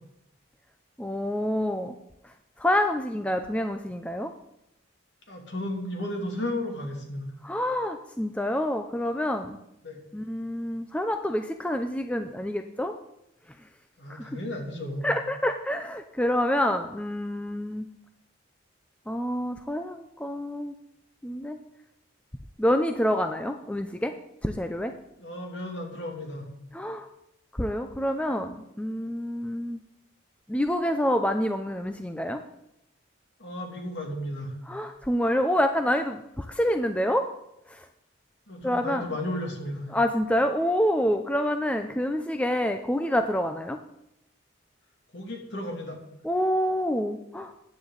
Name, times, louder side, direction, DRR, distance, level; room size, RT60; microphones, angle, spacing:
voice 1, 1.0-1.9 2.6-4.3 7.4-9.6 10.1-13.0 14.1-14.3 15.0-17.9 19.1-20.7 21.2-21.6 22.6-24.1 24.4-24.9 26.7-27.1 27.6-29.8 30.5-32.4 34.7-37.3 37.7-37.8 38.6-39.0 39.9-43.8 46.2-47.5, equal, 5° left, 6 dB, 0.5 m, -27 dB
voice 2, 5.3-7.3 9.8-10.0 14.0-15.1 25.2-26.5 33.4-34.6 38.5-39.9 45.1-46.0, left 1 dB, 60° left, 1 dB, 2.7 m, -34 dB
14.5 x 9.7 x 4.0 m, 0.82 s
head